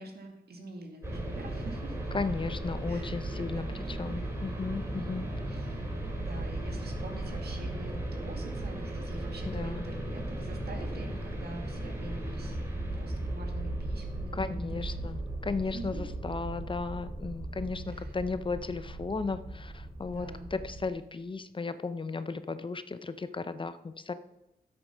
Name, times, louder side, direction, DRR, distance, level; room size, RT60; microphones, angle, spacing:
voice 1, 0.0-2.0 2.9-4.3 5.5-5.9 6.2-14.9 15.7-16.0 17.9-18.2 20.0-20.5, right 2 dB, 80° right, 3 dB, 2.0 m, -46 dB
sound 1, 1.0-20.9, right 1 dB, 15° right, 3.7 m, -36 dB
voice 2, 2.1-5.3 9.5-9.8 14.3-24.1, left 4 dB, 30° left, 12 dB, 0.6 m, -35 dB
10.5 x 8.0 x 5.5 m, 0.91 s
wide cardioid pair, 95°, 16 cm